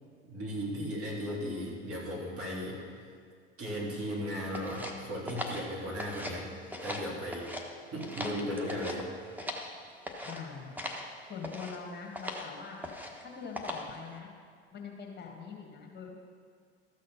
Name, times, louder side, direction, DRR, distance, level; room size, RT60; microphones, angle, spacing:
voice 1, 0.3-2.8 3.6-6.5 6.8-7.5 7.9-9.1, equal, 40° right, -4 dB, 3.5 m, -36 dB
sound 1, 4.5-6.4 6.7-7.6 8.0-9.7 10.0-10.4 10.8-11.1 11.4-11.8 12.1-12.5 12.8-13.2 13.5-14.0, left 1 dB, 5° right, 1.3 m, -39 dB
voice 2, 10.2-10.8 11.3-12.8 13.2-14.3 14.7-16.2, left 5 dB, 30° left, 0 dB, 1.9 m, -43 dB
13.5 x 6.4 x 5.7 m, 2.1 s
hypercardioid pair, 80°, 35 cm